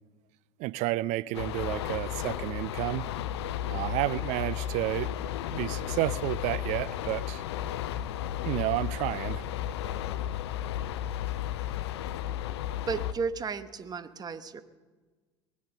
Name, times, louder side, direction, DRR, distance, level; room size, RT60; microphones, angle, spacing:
voice 1, 0.6-3.1 3.7-5.1 5.5-7.4 8.4-9.4, right 17 dB, 55° right, 0.5 m, -31 dB
sound 1, 1.3-13.1, left 11 dB, 75° left, 0.6 m, -33 dB
voice 2, 12.8-14.6, right 5 dB, 30° right, 1.0 m, -33 dB
20.5 x 9.5 x 6.8 m
hypercardioid pair, 70°, 14 cm